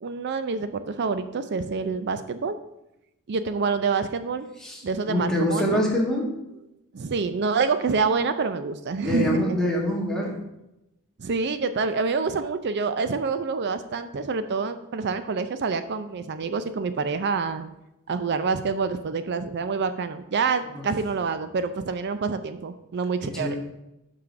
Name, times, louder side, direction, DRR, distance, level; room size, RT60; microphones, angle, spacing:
voice 1, 0.0-2.6 3.3-4.5 4.8-5.9 6.9-9.6 11.2-17.7 18.1-23.6, right 4 dB, 50° right, 11 dB, 0.5 m, -27 dB
voice 2, 5.1-6.3 9.0-10.4 20.7-20.8 23.3-23.6, left 1 dB, 5° left, -3 dB, 1.6 m, -25 dB
5.8 x 5.0 x 6.0 m, 0.88 s
head